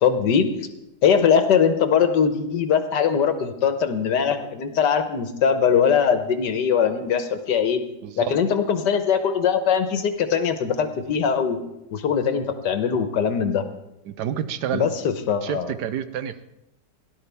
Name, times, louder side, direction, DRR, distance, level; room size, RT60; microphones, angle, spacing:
voice 1, 0.0-0.5 1.0-7.8 8.2-11.6 11.9-13.6 14.7-15.7, left 7 dB, 85° left, 8 dB, 1.7 m, -21 dB
voice 2, 8.0-8.4 14.1-14.9 15.4-16.5, right 9 dB, 75° right, 12 dB, 1.3 m, -29 dB
17.5 x 11.5 x 3.5 m, 0.90 s
omnidirectional pair, 1.8 m